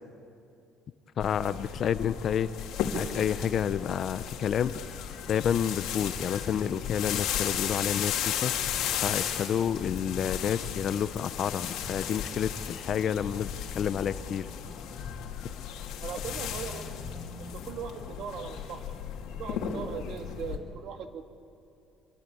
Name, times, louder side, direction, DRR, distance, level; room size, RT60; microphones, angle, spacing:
sound 1, 1.2-20.6, left 8 dB, 65° left, 2.7 m, -35 dB
voice 1, 1.2-2.5 2.9-4.8 5.3-8.7 9.0-14.5, left 8 dB, 35° left, 13 dB, 0.6 m, -29 dB
voice 2, 16.0-17.0 17.4-18.8 19.3-21.2, right 6 dB, 50° right, 6 dB, 1.8 m, -39 dB
26.0 x 23.0 x 8.6 m, 2.7 s
cardioid pair, 175°, 0 cm